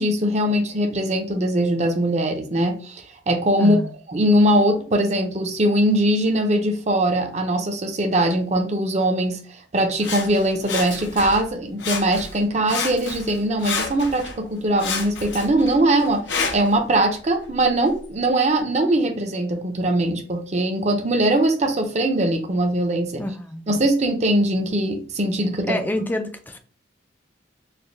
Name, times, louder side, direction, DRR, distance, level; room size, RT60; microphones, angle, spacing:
voice 1, 0.0-3.8 4.1-9.4 9.7-16.3 16.5-23.2 23.7-25.8, right 1 dB, 40° right, 0.6 m, -21 dB
voice 2, 3.6-3.9 23.2-23.7 25.7-26.6, left 1 dB, 10° left, 0.4 m, -27 dB
Sawing, 10.0-11.5 11.8-12.4 12.7-14.4 14.8-16.8 17.4-17.5, left 5 dB, 85° left, 0.7 m, -30 dB
4.1 x 2.2 x 3.2 m
head